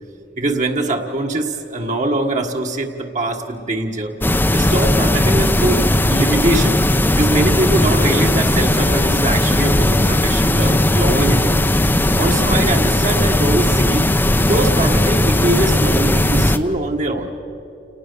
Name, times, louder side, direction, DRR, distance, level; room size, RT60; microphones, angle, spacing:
voice 1, 0.4-4.1 4.5-5.8 6.1-6.8 7.1-11.6 12.2-14.0 14.4-17.3, right 2 dB, 45° right, 2 dB, 1.6 m, -22 dB
sound 1, 4.2-16.6, left 1 dB, 10° left, 0.7 m, -16 dB
28.5 x 19.0 x 6.9 m, 2.8 s
head